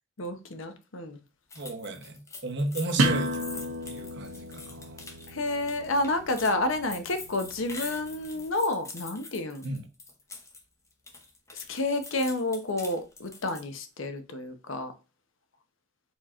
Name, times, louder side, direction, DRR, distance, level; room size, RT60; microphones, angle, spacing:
voice 1, 0.2-1.2 5.3-9.6 11.5-14.9, left 2 dB, 70° left, 0.8 m, -30 dB
sound 1, 1.5-10.6 10.9-13.8, left 3 dB, 15° left, 0.6 m, -45 dB
voice 2, 1.5-5.0 9.6-9.8, right 2 dB, 55° right, 0.8 m, -34 dB
sound 2, 3.0-8.4, right 1 dB, 80° right, 1.0 m, -33 dB
4.5 x 4.3 x 2.4 m
head